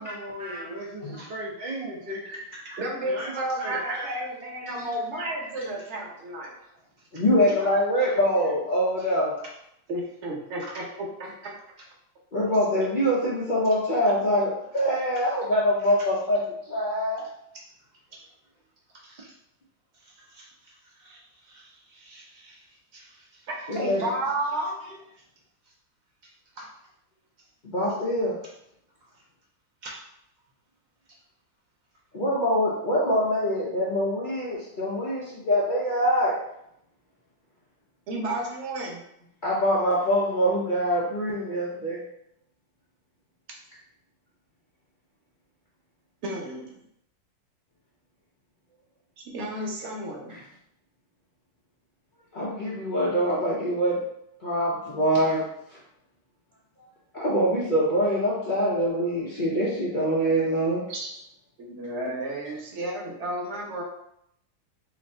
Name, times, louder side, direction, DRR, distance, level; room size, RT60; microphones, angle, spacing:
voice 1, 0.0-2.2 2.5-2.6 3.0-4.2 7.0-8.2 10.6-10.8 11.8-11.9 15.8-15.9 18.1-18.2 18.9-19.3 19.9-23.5 26.2-26.3 26.5-26.7 29.0-29.2 29.8-30.0, right 1 dB, 80° right, -4 dB, 0.4 m, -40 dB
voice 2, 2.8-6.6 9.9-11.6 20.2-20.3 23.5-24.7 38.1-39.0 46.2-46.8 49.3-50.3 60.9-61.1 61.6-63.8, right 1 dB, 50° right, -1 dB, 0.9 m, -32 dB
voice 3, 7.1-9.3 12.3-16.4 16.7-17.2 23.7-24.0 27.6-28.4 32.1-36.3 39.4-42.0 50.3-50.4 52.3-54.0 54.4-55.4 57.1-60.8, equal, 80° left, -7 dB, 0.4 m, -24 dB
3.1 x 2.6 x 4.2 m, 0.76 s
omnidirectional pair, 1.9 m